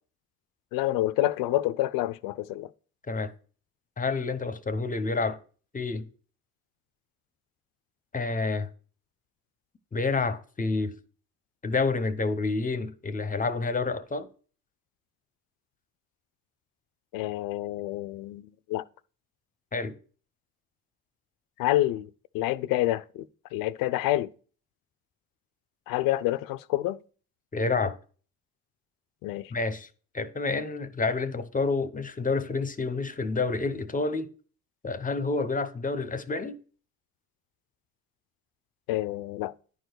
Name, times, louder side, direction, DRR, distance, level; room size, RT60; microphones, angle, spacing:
voice 1, 0.7-2.7 17.1-18.8 21.6-22.1 22.3-23.2 23.5-24.3 25.9-27.0 29.2-29.5 38.9-39.5, left 15 dB, 75° left, 0.5 m, -28 dB
voice 2, 4.0-5.4 5.7-6.0 8.1-8.7 9.9-10.9 11.6-14.3 19.7-19.9 27.5-28.0 29.5-29.9 30.1-34.3 34.8-36.6, left 3 dB, 25° left, 0.8 m, -28 dB
10.0 x 4.7 x 4.5 m
supercardioid pair, 70°, 34 cm